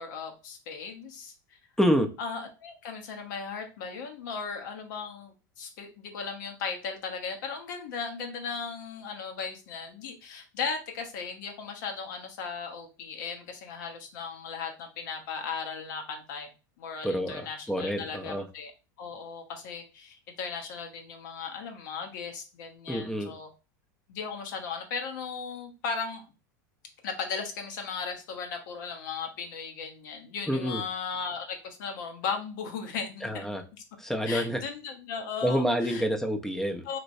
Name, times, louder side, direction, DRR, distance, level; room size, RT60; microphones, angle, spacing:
voice 1, 0.0-1.6 2.2-16.5 16.8-18.7 19.0-23.5 24.1-26.2 27.0-33.6 34.3-36.1 36.8-37.0, left 5 dB, 75° left, 4 dB, 0.9 m, -37 dB
voice 2, 1.8-2.1 17.0-17.4 17.7-18.5 22.9-23.3 30.5-30.8 33.2-33.6 34.0-34.6 35.4-36.8, equal, 5° left, 5 dB, 0.5 m, -27 dB
3.1 x 3.0 x 2.6 m, 0.32 s
supercardioid pair, 110°, 10 cm